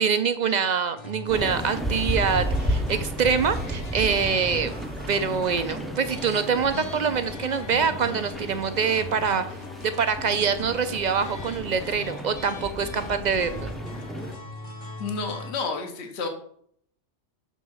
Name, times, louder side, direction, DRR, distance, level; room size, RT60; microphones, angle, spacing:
voice 1, 0.0-4.7 5.1-9.4 9.8-13.7, right 6 dB, 60° right, 10 dB, 0.5 m, -25 dB
sound 1, 1.0-15.5, left 2 dB, 40° left, 0.9 m, -40 dB
sound 2, 1.3-14.4, equal, ahead, 0.5 m, -33 dB
voice 2, 15.0-16.3, left 4 dB, 70° left, 4 dB, 1.3 m, -30 dB
6.9 x 3.6 x 6.1 m, 0.64 s
omnidirectional pair, 1.2 m